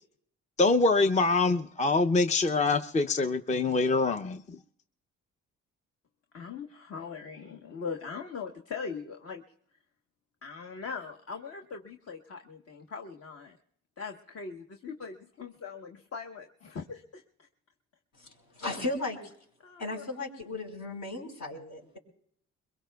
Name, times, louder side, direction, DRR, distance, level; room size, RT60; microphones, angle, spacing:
voice 1, 0.6-4.6, left 3 dB, 25° left, 9 dB, 0.6 m, -25 dB
voice 2, 6.3-9.4 10.4-13.6 14.0-17.2 19.6-20.0, left 5 dB, 50° left, 4 dB, 1.2 m, -40 dB
voice 3, 18.5-19.2 19.8-22.0, left 2 dB, 65° left, 1 dB, 5.1 m, -35 dB
23.0 x 22.0 x 2.3 m, 0.65 s
cardioid pair, 90°, 30 cm